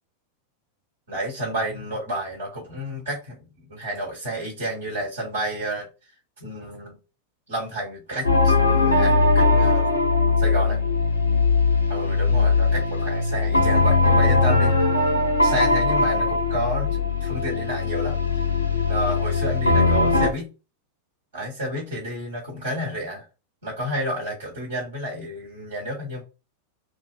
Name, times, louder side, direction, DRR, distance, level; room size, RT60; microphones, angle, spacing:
voice 1, 1.1-5.9 6.4-7.0 7.5-10.0 10.4-10.8 11.9-14.8 15.4-18.1 18.9-20.5 21.3-23.2 23.6-26.2, right 1 dB, 65° right, -2 dB, 1.2 m, -30 dB
sound 1, 8.2-20.3, left 3 dB, 80° left, 0.5 m, -20 dB
2.5 x 2.3 x 2.2 m, 0.30 s
figure-of-eight pair, 90°, 0 cm